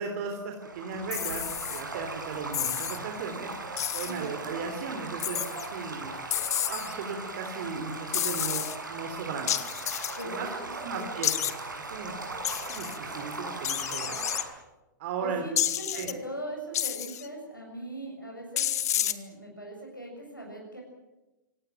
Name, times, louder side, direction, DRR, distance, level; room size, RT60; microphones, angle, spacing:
voice 1, 0.0-3.5 3.9-6.1 6.7-9.5 10.2-10.5 10.8-12.1 12.5-14.2 15.0-15.4 15.9-16.1, right 5 dB, 45° right, 4 dB, 3.5 m, -36 dB
Stream / Gurgling / Trickle dribble, 0.6-14.4, right 3 dB, 75° right, 7.3 m, -39 dB
sound 1, 1.1-1.8 2.5-3.0 3.8-4.2 5.2-5.7 6.3-6.9 8.1-8.8 9.5-10.2 11.2-11.5 12.4-13.0 13.6-14.4 15.6-16.1 16.7-17.3 18.6-19.1, left 11 dB, 55° left, 1.5 m, -30 dB
voice 2, 15.2-20.8, right 1 dB, 85° left, -1 dB, 7.0 m, -40 dB
26.0 x 18.0 x 9.3 m, 1.1 s
figure-of-eight pair, 105°, 10 cm